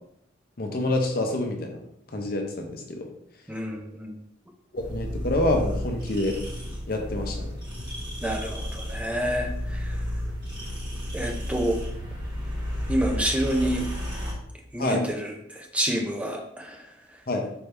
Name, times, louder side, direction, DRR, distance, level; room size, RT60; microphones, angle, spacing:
voice 1, 0.6-1.8 2.1-3.1 4.7-6.4 6.9-7.5 14.8-15.0 17.3-17.4, left 1 dB, 50° left, 3 dB, 0.6 m, -27 dB
voice 2, 3.5-4.1 8.2-10.0 11.1-11.8 12.9-13.8 14.7-16.8, right 1 dB, 5° right, 1 dB, 0.5 m, -28 dB
sound 1, 4.8-14.3, equal, 25° right, 1.5 m, -32 dB
4.5 x 2.7 x 3.4 m, 0.75 s
head